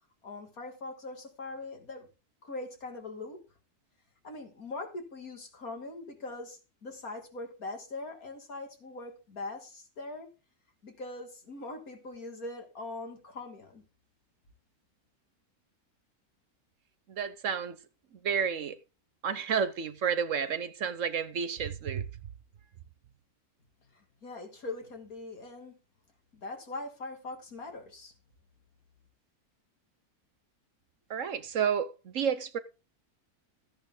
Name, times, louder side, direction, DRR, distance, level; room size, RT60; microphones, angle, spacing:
voice 1, 0.2-2.1 2.4-3.4 4.2-10.3 10.8-13.8 23.9-25.7 26.3-28.1, left 2 dB, 70° left, 3.2 m, -41 dB
voice 2, 17.1-17.8 18.2-18.8 19.2-22.0 31.1-32.6, right 7 dB, 60° right, 1.2 m, -30 dB
14.0 x 10.0 x 3.8 m
omnidirectional pair, 1.6 m